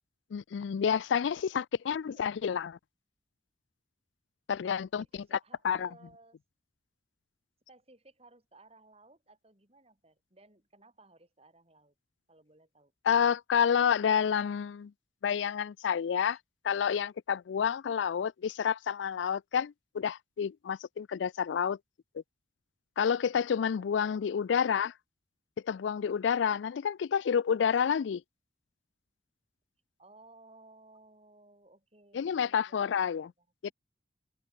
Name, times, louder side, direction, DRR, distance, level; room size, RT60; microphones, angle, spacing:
voice 1, 0.3-2.8 4.5-5.0 5.6-5.9 13.0-14.9 15.2-16.4 16.6-21.8 22.1-22.2 23.0-24.9 25.6-28.2 32.1-33.3 33.6-33.7, left 7 dB, 80° left, 0.4 m, -29 dB
voice 2, 4.6-6.4 7.7-11.9 12.3-12.9 16.3-16.4 23.8-24.2 30.0-33.7, right 2 dB, 35° right, 6.0 m, -59 dB
open air
head